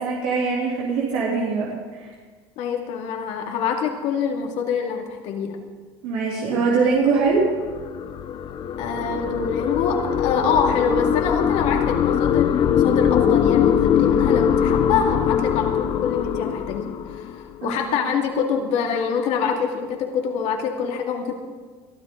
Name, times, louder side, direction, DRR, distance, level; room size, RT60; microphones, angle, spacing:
voice 1, 0.0-2.1 6.0-7.4 17.6-17.7, right 4 dB, 80° right, -5 dB, 3.2 m, -22 dB
voice 2, 2.6-5.6 8.8-21.3, left 6 dB, 65° left, 2 dB, 2.3 m, -25 dB
sound 1, 7.0-17.6, left 9 dB, 45° left, 0.8 m, -22 dB
22.5 x 12.5 x 3.9 m, 1.5 s
cardioid pair, 135°, 12 cm